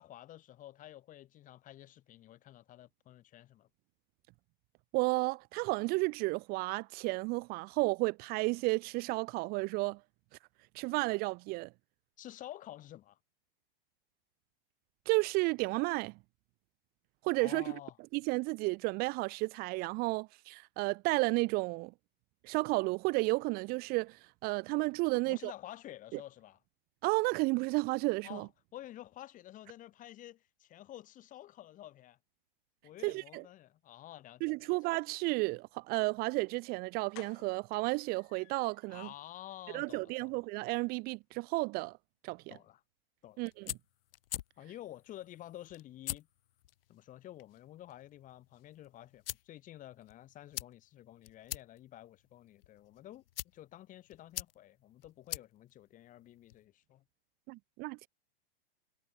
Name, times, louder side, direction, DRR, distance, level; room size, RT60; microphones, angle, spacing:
voice 1, 0.0-3.7 12.2-13.2 17.4-18.0 25.3-26.6 28.2-32.2 32.8-34.7 38.9-40.4 42.5-42.8 43.2-43.4 44.6-46.3 46.9-53.2 53.5-57.0, left 13 dB, 25° left, 1.5 m, -50 dB
voice 2, 4.9-10.0 10.7-11.7 15.1-16.1 17.2-17.6 18.1-21.9 22.4-25.5 26.1-26.2 27.0-28.5 33.0-33.4 34.4-39.1 39.7-42.0 42.2-42.5 43.4-43.7 57.5-58.1, right 25 dB, 30° right, 0.6 m, -32 dB
sound 1, 36.5-36.6 37.1-38.9 39.3-39.4 39.7-39.9 40.1-40.2, left 40 dB or more, 45° left, 3.9 m, -56 dB
sound 2, 43.3-56.7, left 14 dB, 70° left, 0.9 m, -47 dB
hypercardioid pair, 130°, 30 cm